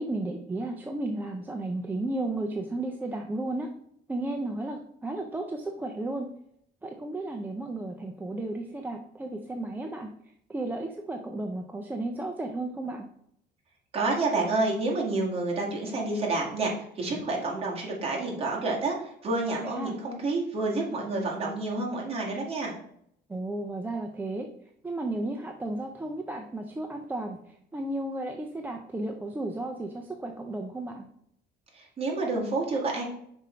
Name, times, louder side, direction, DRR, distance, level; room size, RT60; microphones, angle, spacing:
voice 1, 0.0-3.7 4.1-6.3 6.8-10.1 10.5-13.1 19.6-19.9 23.3-24.5 24.8-27.4 27.7-31.1, right 2 dB, 10° right, 2 dB, 0.4 m, -33 dB
voice 2, 13.9-22.7 31.7-33.0, right 3 dB, 30° right, -2 dB, 1.8 m, -29 dB
5.3 x 5.0 x 4.3 m, 0.70 s
cardioid pair, 160°, 19 cm